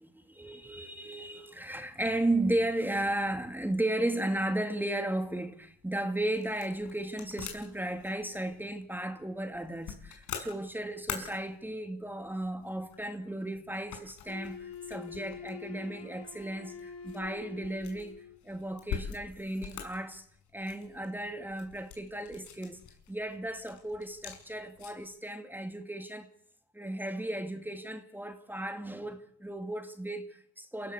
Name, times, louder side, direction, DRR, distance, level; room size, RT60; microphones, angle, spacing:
voice 1, 0.0-18.1 18.4-20.2 20.5-22.8 23.1-26.3 26.7-30.9, right 1 dB, 5° right, 2.4 m, -35 dB
sound 1, 5.6-25.1, left 8 dB, 90° left, 6.4 m, -46 dB
Wind instrument woodwind instrument, 14.3-18.4, left 6 dB, 50° left, 4.7 m, -46 dB
27.5 x 16.5 x 8.1 m
cardioid pair, 90°, 30 cm